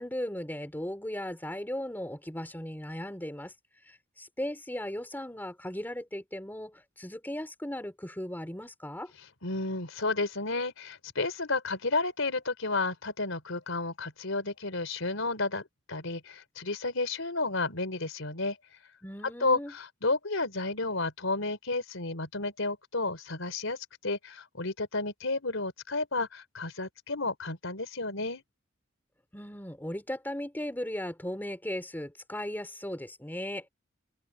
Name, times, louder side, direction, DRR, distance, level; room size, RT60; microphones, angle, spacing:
voice 1, 0.0-3.5 4.2-9.1 19.0-19.7 29.3-33.7, left 1 dB, 10° left, 3.4 m, -37 dB
voice 2, 9.4-18.6 19.4-23.8 24.0-28.4, left 3 dB, 80° left, 3.9 m, -32 dB
open air
head